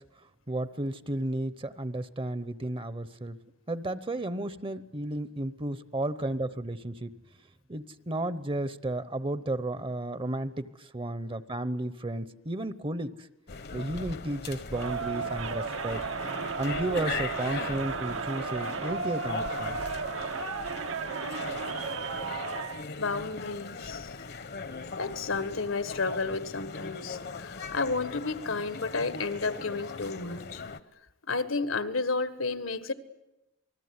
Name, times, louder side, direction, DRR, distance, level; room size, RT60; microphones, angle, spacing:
voice 1, 0.5-3.4 3.7-7.1 7.7-13.1 13.7-16.0 16.6-19.8, right 1 dB, 25° right, 14 dB, 0.9 m, -33 dB
sound 1, 13.5-30.8, left 4 dB, 55° left, 1.2 m, -40 dB
Crowd, 14.7-22.8, right 5 dB, 75° right, 1.3 m, -34 dB
voice 2, 23.0-24.1 25.0-30.6 31.3-32.9, left 4 dB, 80° left, 11 dB, 1.7 m, -31 dB
28.0 x 20.5 x 9.7 m, 0.96 s
head